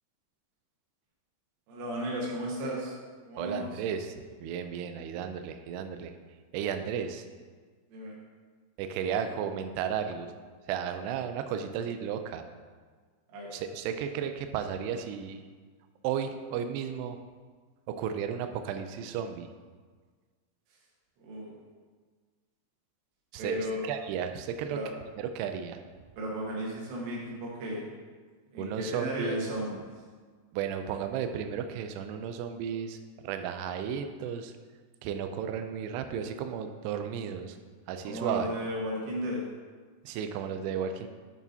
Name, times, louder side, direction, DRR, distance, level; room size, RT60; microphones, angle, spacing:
voice 1, 1.7-3.0 3.2-3.8 7.9-8.2 13.3-13.6 20.7-20.8 21.2-21.5 23.4-23.9 24.7-24.9 26.2-27.9 28.5-30.0 38.0-39.4, equal, 70° right, -3 dB, 3.6 m, -35 dB
voice 2, 3.4-6.1 6.5-7.3 8.8-10.3 10.7-12.4 13.5-15.4 16.0-17.2 17.9-19.5 23.3-24.8 25.2-25.8 28.6-29.5 30.5-33.0 33.2-34.5 35.0-37.6 37.9-38.5 40.0-41.1, right 8 dB, 90° right, 7 dB, 2.3 m, -34 dB
8.4 x 7.1 x 2.8 m, 1.5 s
omnidirectional pair, 5.3 m